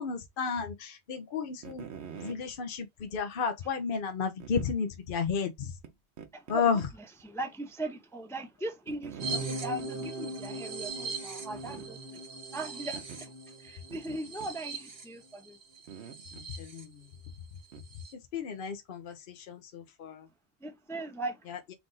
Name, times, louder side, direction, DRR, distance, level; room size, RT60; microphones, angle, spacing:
voice 1, 0.0-1.8 2.2-5.7 6.5-6.8 16.6-16.9 18.3-20.2, left 6 dB, 60° left, 0.8 m, -32 dB
sound 1, 1.6-2.4 3.3-3.4 4.4-4.7 5.8-5.9 6.2-6.9 7.2-7.3 8.9-9.5 9.8-10.1 10.4-10.5 10.8-10.9 11.5-11.9 12.9-13.2 13.9-14.5 15.9-16.5 17.7-17.8, right 7 dB, 90° right, 1.0 m, -45 dB
voice 2, 6.3-12.2 12.5-15.6 20.6-21.4, right 2 dB, 5° left, 0.6 m, -39 dB
sound 2, 9.2-16.8 17.3-17.4 17.6-18.1, right 3 dB, 65° right, 1.3 m, -39 dB
4.7 x 2.5 x 3.8 m
omnidirectional pair, 1.1 m